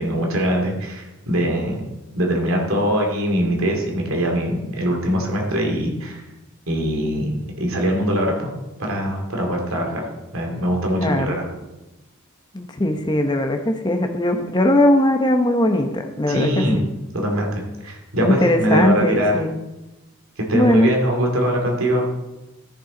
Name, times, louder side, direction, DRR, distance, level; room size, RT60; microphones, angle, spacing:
voice 1, 0.0-1.8 2.1-6.2 6.7-8.5 8.8-11.5 16.3-16.8 17.1-19.3 20.5-22.1, equal, 80° right, 0 dB, 2.5 m, -22 dB
voice 2, 11.0-11.4 12.5-16.6 18.2-19.6 20.5-20.9, left 1 dB, 20° left, 5 dB, 0.9 m, -19 dB
13.5 x 7.1 x 3.9 m, 1.0 s
head